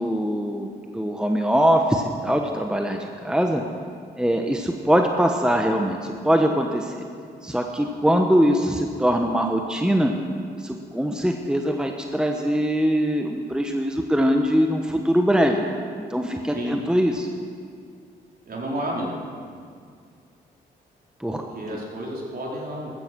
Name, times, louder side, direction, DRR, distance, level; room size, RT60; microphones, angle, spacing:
voice 1, 0.0-3.6 4.2-6.9 7.4-10.1 10.6-15.7 16.1-17.3 21.2-21.4, equal, 5° right, 3 dB, 1.3 m, -22 dB
voice 2, 18.5-19.1 21.2-22.9, equal, 50° right, -3 dB, 4.5 m, -31 dB
15.0 x 14.0 x 6.3 m, 2.2 s
supercardioid pair, 50°, 20 cm